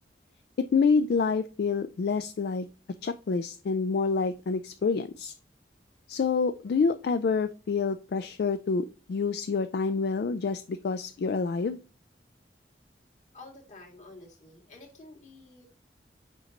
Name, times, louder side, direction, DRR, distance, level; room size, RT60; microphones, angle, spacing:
voice 1, 0.6-2.7 3.0-5.3 6.1-11.8, left 5 dB, 60° left, 10 dB, 0.3 m, -27 dB
voice 2, 13.3-15.7, left 2 dB, 40° left, -1 dB, 2.1 m, -50 dB
7.4 x 5.2 x 3.0 m, 0.36 s
head